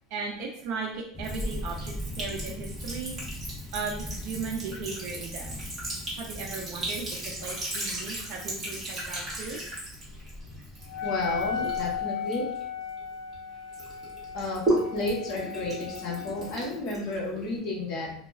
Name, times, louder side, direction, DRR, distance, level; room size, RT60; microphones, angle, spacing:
voice 1, 0.1-3.5 3.7-5.5 6.2-7.1 7.4-9.6, right 4 dB, 60° right, -1 dB, 0.4 m, -36 dB
sound 1, 1.1-12.0, left 1 dB, 15° left, 0.5 m, -41 dB
Sink (filling or washing) / Trickle dribble, 1.2-13.4 13.7-17.6, right 1 dB, 20° right, 1.0 m, -36 dB
Wind instrument woodwind instrument, 10.9-16.6, left 7 dB, 75° left, 0.3 m, -35 dB
voice 2, 11.0-12.5 14.3-14.6 14.9-18.1, left 2 dB, 45° left, -2 dB, 0.8 m, -32 dB
2.3 x 2.2 x 3.1 m, 0.65 s
cardioid pair, 155°, 0 cm